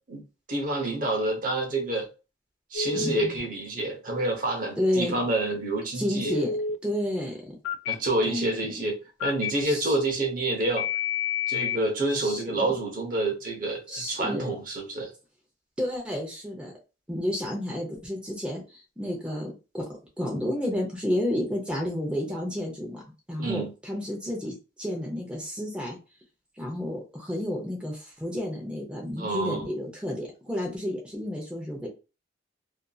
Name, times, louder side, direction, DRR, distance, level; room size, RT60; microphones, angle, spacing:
voice 1, 0.5-2.1 2.7-6.3 7.9-10.9 11.5-15.1 23.4-23.7 29.2-29.6, right 2 dB, 45° right, 0.8 m, -28 dB
Telephone, 2.7-3.3 6.2-6.8 7.6-7.9 9.2-9.5 10.8-11.8, left 6 dB, 90° left, 0.3 m, -28 dB
voice 2, 2.9-3.4 4.8-5.2 5.9-6.6 6.8-7.6 8.2-8.5 9.6-10.0 12.1-12.7 13.9-14.5 15.8-16.7 17.1-18.6 19.0-19.9 20.2-23.0 23.3-26.0 26.6-31.9, left 1 dB, 5° right, 0.6 m, -31 dB
2.7 x 2.5 x 2.3 m
head